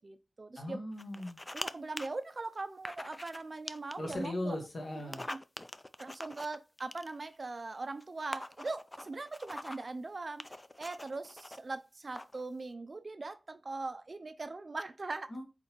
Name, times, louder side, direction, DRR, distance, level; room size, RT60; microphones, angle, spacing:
voice 1, 0.0-0.8 1.5-4.6 4.9-5.4 6.0-10.5 10.8-15.3, right 3 dB, 45° right, 0.4 m, -41 dB
voice 2, 0.6-1.4 4.0-5.2 15.3-15.4, left 1 dB, 65° left, 1.3 m, -38 dB
sound 1, 1.0-1.7 2.0-2.1 2.8-3.4 3.7-4.3 5.0-7.4 8.0-8.1 8.3-9.9 10.4-11.6 12.1-12.4, left 1 dB, 20° left, 0.3 m, -43 dB
4.3 x 3.9 x 3.0 m
wide cardioid pair, 90°, 0 cm